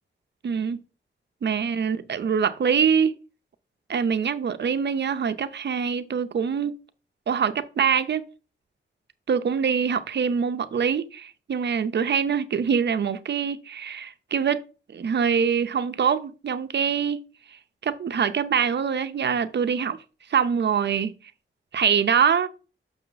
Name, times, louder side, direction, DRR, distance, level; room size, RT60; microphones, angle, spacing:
voice 1, 0.4-0.8 1.4-3.1 3.9-6.7 7.3-8.2 9.3-14.6 14.9-17.2 17.8-20.0 20.3-21.1 21.7-22.5, right 7 dB, 55° right, 0.5 m, -24 dB
6.5 x 6.2 x 3.9 m
wide cardioid pair, 175°, 21 cm